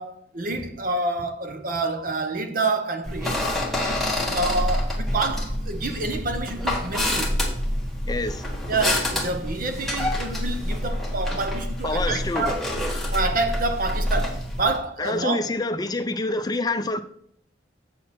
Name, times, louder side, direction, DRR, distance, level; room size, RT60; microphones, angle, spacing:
voice 1, 0.0-3.4 3.8-4.0 4.3-7.4 8.7-12.6 13.1-15.4, right 3 dB, 50° right, 0.9 m, -28 dB
sound 1, 3.0-14.8, left 1 dB, ahead, 1.4 m, -27 dB
voice 2, 8.1-8.6 11.8-12.5 15.0-17.0, left 2 dB, 20° left, 0.6 m, -27 dB
7.4 x 6.4 x 4.3 m
head